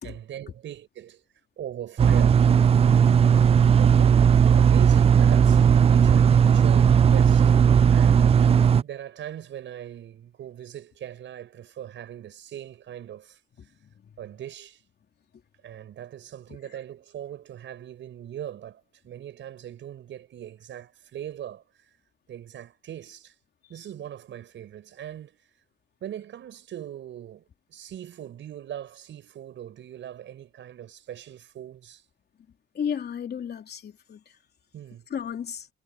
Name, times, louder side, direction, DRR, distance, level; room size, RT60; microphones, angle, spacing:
voice 1, 0.0-1.2 1.6-2.5 3.8-4.3 4.5-7.5 7.9-13.4 14.2-14.8 15.6-21.9 22.3-23.3 23.7-25.4 26.0-32.0 34.7-35.1, right 11 dB, 70° right, 6.8 m, -40 dB
sound 1, 2.0-8.8, right 7 dB, 30° right, 0.3 m, -17 dB
voice 2, 13.6-14.1 16.5-16.6 23.6-23.7 32.5-34.4 35.1-35.7, left 8 dB, 55° left, 3.3 m, -35 dB
cardioid pair, 90°, 20 cm